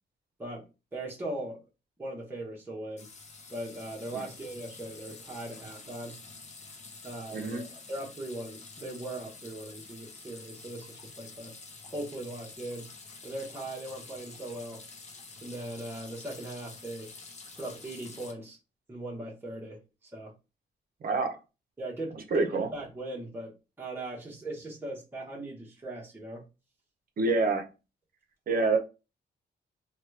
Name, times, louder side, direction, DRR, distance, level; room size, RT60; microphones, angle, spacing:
voice 1, 0.4-1.6 2.0-3.1 3.5-6.2 7.0-11.6 11.9-12.9 13.2-14.8 15.4-17.1 17.6-18.6 18.9-20.3 21.8-26.4, right 1 dB, 10° right, 0.8 m, -39 dB
sound 1, 3.0-18.3, left 4 dB, 40° left, 0.6 m, -48 dB
voice 2, 7.3-7.6 21.0-21.4 22.3-22.7 27.2-27.7 28.5-28.8, right 3 dB, 50° right, 0.7 m, -26 dB
2.9 x 2.3 x 3.1 m
cardioid pair, 120°, 19 cm